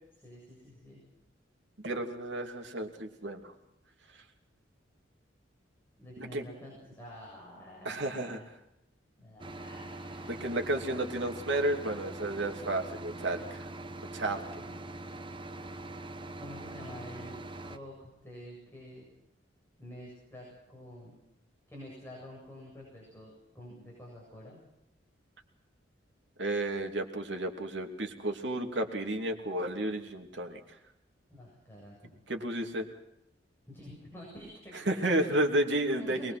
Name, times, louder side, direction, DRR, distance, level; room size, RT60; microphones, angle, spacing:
voice 1, 0.2-1.0 6.0-8.4 9.2-10.5 14.6-14.8 16.4-17.4 17.6-19.0 19.8-21.1 21.7-24.6 31.3-32.2 33.7-35.5 36.0-36.4, left 1 dB, 10° left, -4 dB, 7.8 m, -48 dB
voice 2, 1.8-3.5 6.2-6.4 7.8-8.4 10.3-13.6 14.1-14.4 26.4-30.6 32.3-32.9 34.9-36.3, right 1 dB, 75° right, 4 dB, 2.9 m, -32 dB
sound 1, 9.4-17.8, right 2 dB, 25° right, 1.2 m, -43 dB
23.5 x 21.5 x 6.1 m, 0.85 s
head